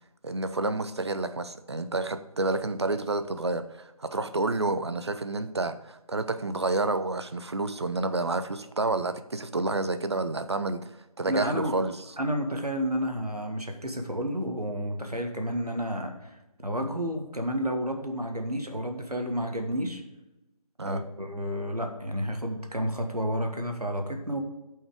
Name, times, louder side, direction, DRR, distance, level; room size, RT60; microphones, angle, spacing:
voice 1, 0.2-10.9 11.2-11.9 20.8-21.0, right 2 dB, 45° right, 10 dB, 0.6 m, -29 dB
voice 2, 11.3-11.7 12.2-16.3 16.6-20.0 20.8-24.4, equal, 90° right, 4 dB, 1.6 m, -31 dB
9.0 x 5.6 x 5.0 m, 0.99 s
figure-of-eight pair, 160°, 19 cm